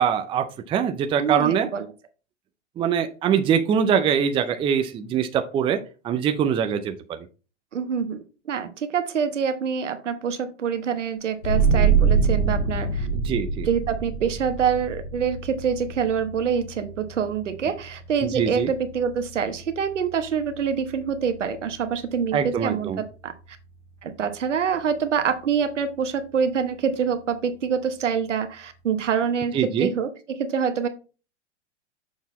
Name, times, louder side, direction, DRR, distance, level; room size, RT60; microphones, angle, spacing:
voice 1, 0.0-1.7 2.8-5.8 6.0-6.9 13.1-13.7 18.2-18.7 22.3-23.0 29.5-29.9, right 8 dB, 15° right, 7 dB, 0.5 m, -23 dB
voice 2, 1.2-1.8 7.7-8.2 8.5-13.1 13.6-23.3 24.0-30.9, right 7 dB, 85° right, 9 dB, 1.0 m, -26 dB
sound 1, 11.4-22.7, right 5 dB, 65° left, 2.3 m, -26 dB
6.6 x 4.0 x 4.1 m, 0.34 s
hypercardioid pair, 115°, 36 cm